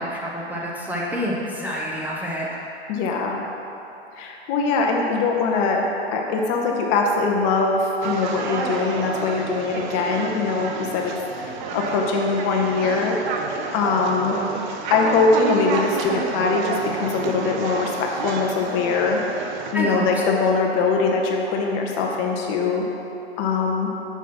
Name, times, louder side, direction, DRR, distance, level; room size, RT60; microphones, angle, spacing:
voice 1, 0.0-2.6 19.7-20.2, equal, 5° right, -5 dB, 0.7 m, -27 dB
voice 2, 2.9-3.4 4.2-11.1 11.4-13.2 13.7-14.4 14.9-19.2 19.7-22.9 23.4-23.9, left 4 dB, 40° left, 0 dB, 0.8 m, -22 dB
sound 1, 8.0-19.7, right 4 dB, 45° right, 0.7 m, -30 dB
5.9 x 5.9 x 4.3 m, 3.0 s
figure-of-eight pair, 95°, 33 cm